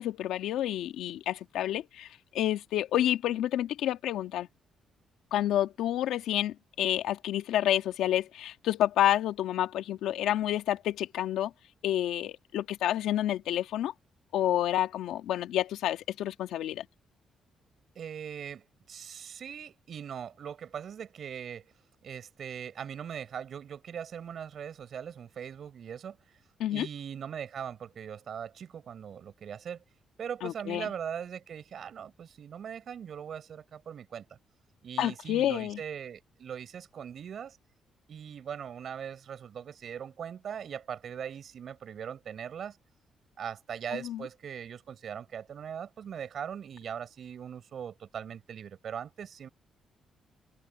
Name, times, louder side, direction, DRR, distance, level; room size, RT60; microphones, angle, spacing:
voice 1, 0.0-2.1 2.3-4.5 5.3-11.5 11.8-13.9 14.3-16.9 26.6-26.9 30.4-30.9 35.0-35.8 43.9-44.3, left 12 dB, 85° left, 2.0 m, -29 dB
voice 2, 18.0-21.7 22.0-26.2 26.7-29.8 30.2-34.4 34.8-37.6 38.1-42.8 43.4-49.5, right 8 dB, 60° right, 7.2 m, -40 dB
cardioid pair, 100°, 0 cm